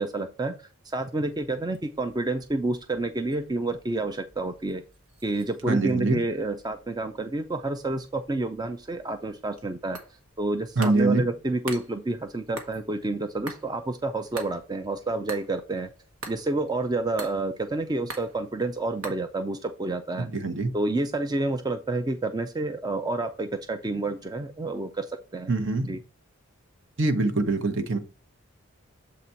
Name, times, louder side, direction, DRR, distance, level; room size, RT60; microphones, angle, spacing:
voice 1, 0.0-4.8 5.2-10.0 10.4-15.9 16.3-20.3 20.7-25.5 25.9-26.0, right 2 dB, 20° right, 8 dB, 0.4 m, -29 dB
sound 1, 1.2-19.1, right 3 dB, 80° right, 1.5 m, -47 dB
voice 2, 5.7-6.2 10.8-11.2 20.3-20.7 25.5-26.0 27.0-28.0, right 3 dB, 55° right, 7 dB, 1.0 m, -24 dB
7.5 x 4.1 x 4.4 m, 0.34 s
head